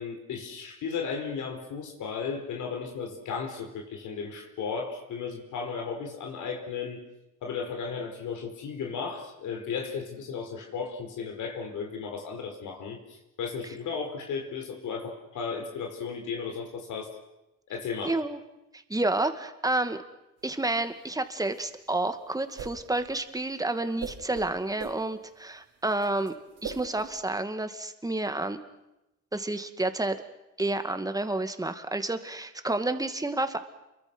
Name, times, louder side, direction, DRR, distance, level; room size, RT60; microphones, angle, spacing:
voice 1, 0.0-7.0 7.4-17.1 17.7-18.2, left 5 dB, 80° left, 2 dB, 4.9 m, -35 dB
voice 2, 18.0-18.4 18.9-20.0 20.4-26.3 26.6-28.6 29.3-30.2 30.6-33.6, right 2 dB, 10° right, 8 dB, 2.3 m, -30 dB
sound 1, 20.4-27.2, right 7 dB, 80° right, 5.1 m, -42 dB
29.0 x 23.5 x 6.3 m, 0.91 s
cardioid pair, 90°, 30 cm